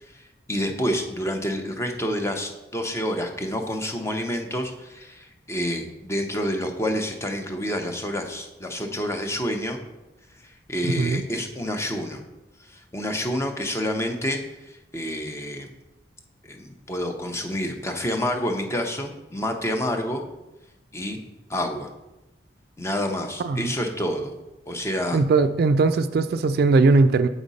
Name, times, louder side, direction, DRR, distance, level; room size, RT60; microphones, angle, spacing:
voice 1, 0.5-9.8 10.4-12.2 12.7-15.7 16.4-20.2 20.9-21.2 21.5-21.9 22.8-24.3 24.7-25.2, equal, 15° left, 4 dB, 0.6 m, -28 dB
voice 2, 23.4-23.7 25.1-27.3, right 3 dB, 55° right, 10 dB, 0.3 m, -19 dB
7.1 x 5.0 x 4.0 m, 0.99 s
head